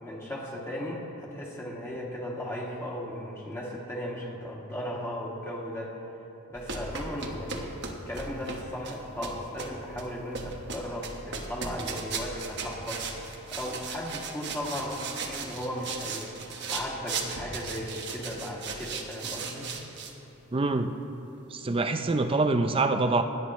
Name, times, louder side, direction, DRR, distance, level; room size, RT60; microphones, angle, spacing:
voice 1, 0.0-5.9 6.5-13.2 13.5-19.7, equal, 10° left, -4 dB, 1.9 m, -36 dB
sound 1, 6.5-20.1, right 4 dB, 55° right, 1.2 m, -37 dB
voice 2, 20.5-20.9 21.5-23.2, right 3 dB, 25° right, 8 dB, 0.5 m, -25 dB
27.0 x 9.5 x 3.1 m, 3.0 s
head